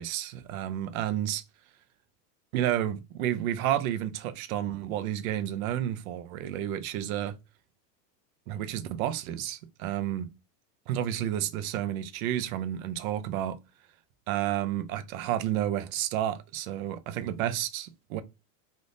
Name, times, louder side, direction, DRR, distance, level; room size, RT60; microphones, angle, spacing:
voice 1, 0.0-1.4 2.5-7.4 8.5-10.3 10.9-13.6 14.3-18.2, right 11 dB, 55° right, 0.6 m, -31 dB
3.5 x 2.5 x 2.6 m
supercardioid pair, 155°, 50 cm